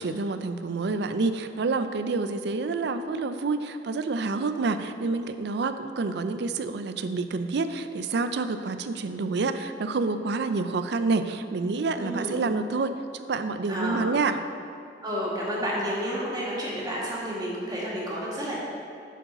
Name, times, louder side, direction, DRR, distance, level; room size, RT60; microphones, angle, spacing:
voice 1, 0.0-14.4, right 3 dB, 65° right, 10 dB, 0.4 m, -28 dB
voice 2, 12.0-12.4 13.7-14.1 15.0-18.5, equal, 25° right, -6 dB, 2.0 m, -30 dB
8.9 x 4.7 x 5.5 m, 2.4 s
head